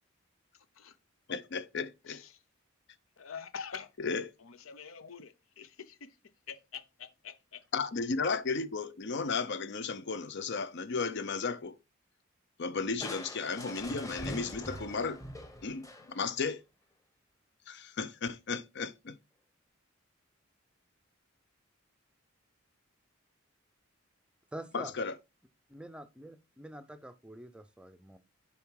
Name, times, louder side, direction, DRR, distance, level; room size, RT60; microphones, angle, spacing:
voice 1, 1.3-2.2 4.0-4.3 7.7-11.8 12.6-15.2 15.6-16.6 17.7-19.2 24.7-25.1, left 4 dB, 60° left, 0.6 m, -34 dB
voice 2, 2.1-2.4 3.2-3.9 4.4-7.6, left 6 dB, 90° left, 0.8 m, -46 dB
Crushing, 13.0-16.4, left 1 dB, 15° left, 1.2 m, -43 dB
voice 3, 24.5-24.9 25.7-28.2, right 1 dB, 5° right, 0.5 m, -46 dB
7.0 x 4.4 x 4.7 m
head